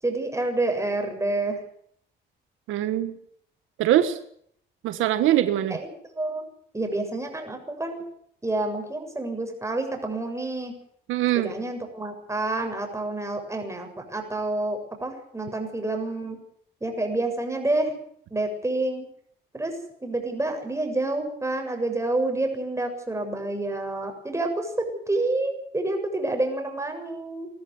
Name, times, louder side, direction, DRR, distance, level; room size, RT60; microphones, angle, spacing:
voice 1, 0.0-1.6 5.7-5.8 6.2-6.4 6.7-8.0 8.4-10.7 11.4-16.4 16.8-17.9 18.3-19.0 19.5-19.7 20.0-27.5, right 2 dB, 15° right, 4 dB, 7.4 m, -28 dB
voice 2, 2.7-3.2 3.8-4.2 4.8-5.8 11.1-11.5, right 12 dB, 90° right, 10 dB, 1.5 m, -22 dB
21.0 x 13.5 x 9.7 m, 0.65 s
cardioid pair, 90°, 20 cm